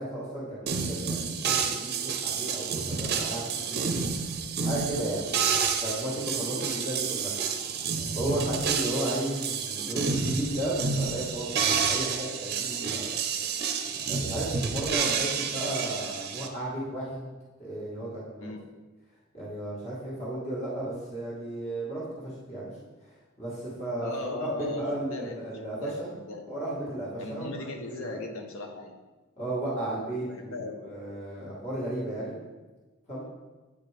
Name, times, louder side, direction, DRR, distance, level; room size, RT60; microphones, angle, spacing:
voice 1, 0.0-4.3 4.6-5.3 5.8-7.3 8.0-13.1 14.1-17.3 17.6-18.5 19.3-22.7 23.4-24.1 24.7-26.1 26.5-27.7 28.0-28.2 29.4-30.5 30.9-32.4 33.1-33.2, right 1 dB, 30° left, -7 dB, 1.5 m, -34 dB
sound 1, 0.7-16.5, right 6 dB, 50° right, 0.5 m, -29 dB
voice 2, 6.3-6.7 18.4-18.6 24.0-26.4 27.2-29.0 30.1-30.8, left 3 dB, 70° left, 3 dB, 0.8 m, -38 dB
8.4 x 4.2 x 3.3 m, 1.2 s
head